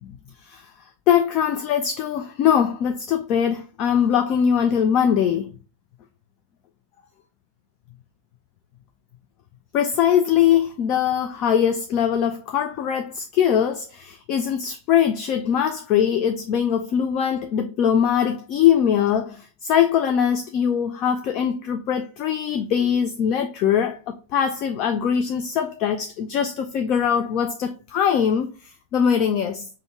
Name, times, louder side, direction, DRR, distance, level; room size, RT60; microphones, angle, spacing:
voice 1, 1.1-5.5 9.7-29.7, left 8 dB, 40° left, 0.4 m, -22 dB
5.2 x 2.2 x 3.4 m
figure-of-eight pair, 90°, 0 cm